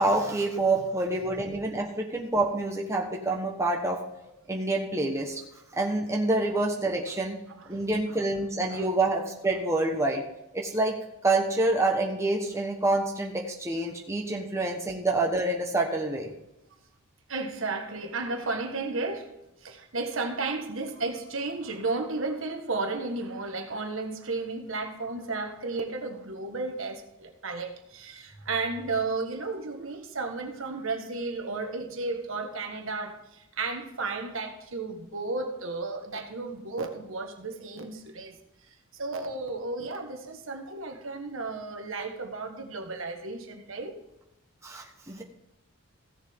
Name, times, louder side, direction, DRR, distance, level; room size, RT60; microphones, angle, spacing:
voice 1, 0.0-4.0 4.5-5.4 5.8-7.4 7.7-10.2 10.5-11.0 11.2-16.3 44.6-45.2, right 2 dB, 15° right, 0 dB, 1.2 m, -27 dB
voice 2, 17.3-19.3 19.6-38.3 38.9-44.0, right 3 dB, 60° right, 4 dB, 1.4 m, -33 dB
15.5 x 7.3 x 3.7 m, 0.88 s
head